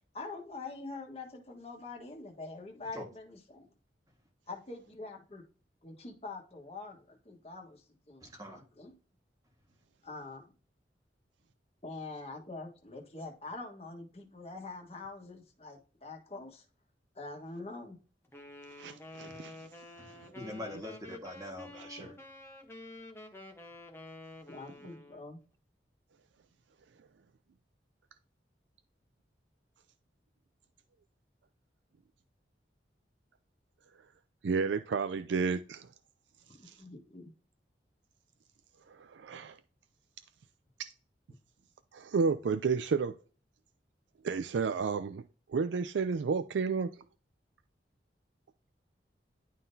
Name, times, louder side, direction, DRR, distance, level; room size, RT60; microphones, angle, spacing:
voice 1, 0.1-3.7 4.5-5.4 5.8-8.3 8.5-8.9 10.0-10.5 11.8-16.6 17.1-18.0 24.5-25.4 36.5-37.3, left 3 dB, 35° left, 1.4 m, -45 dB
voice 2, 8.2-8.6 19.3-19.4 20.0-22.2, left 1 dB, 20° right, 1.6 m, -44 dB
Wind instrument woodwind instrument, 18.3-25.3, left 2 dB, 15° left, 0.9 m, -49 dB
voice 3, 18.8-19.6 21.8-22.1 34.4-35.9 36.6-36.7 38.9-39.6 40.8-40.9 41.9-43.1 44.2-45.2 45.5-46.9, right 5 dB, 85° right, 0.4 m, -31 dB
11.0 x 3.7 x 2.7 m
head